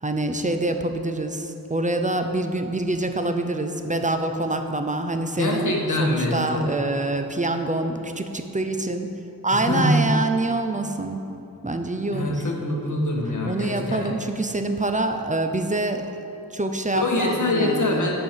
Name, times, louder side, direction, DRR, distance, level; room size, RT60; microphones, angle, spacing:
voice 1, 0.0-5.7 6.0-9.1 9.4-11.2 11.6-12.5 13.4-16.1 16.5-18.1, right 2 dB, 20° right, 6 dB, 0.6 m, -26 dB
voice 2, 5.4-6.7 9.7-10.2 12.1-14.1 16.9-18.1, left 1 dB, 55° left, -2 dB, 1.6 m, -24 dB
10.5 x 4.5 x 6.7 m, 2.9 s
wide cardioid pair, 80°, 37 cm